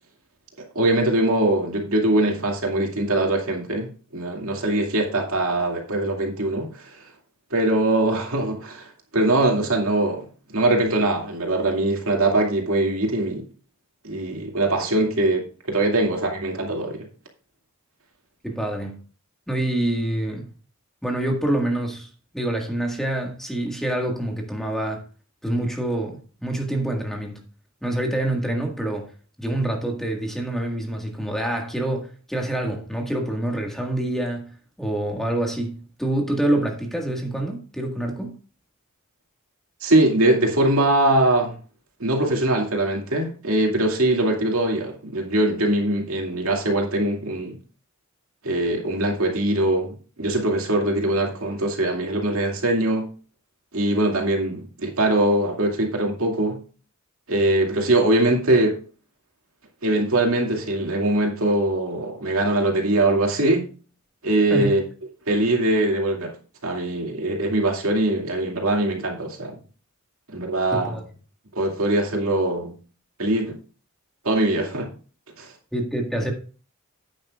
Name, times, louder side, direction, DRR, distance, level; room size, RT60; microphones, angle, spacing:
voice 1, 0.7-6.8 7.5-8.9 9.1-10.2 10.5-13.5 14.0-17.1 39.8-41.6 42.0-47.6 48.4-53.0 53.7-56.6 57.3-58.8 59.8-63.7 64.2-64.8 65.3-66.3 66.6-69.6 70.3-71.0 71.6-72.8 73.2-73.6 74.2-74.9 75.4-75.5, right 1 dB, 85° right, 2.4 m, -22 dB
voice 2, 18.4-19.0 19.5-20.5 21.0-25.1 25.4-27.4 27.8-29.1 29.4-38.4 64.5-64.8 70.7-71.0 75.7-76.3, right 1 dB, ahead, 1.7 m, -26 dB
10.5 x 9.0 x 2.4 m
head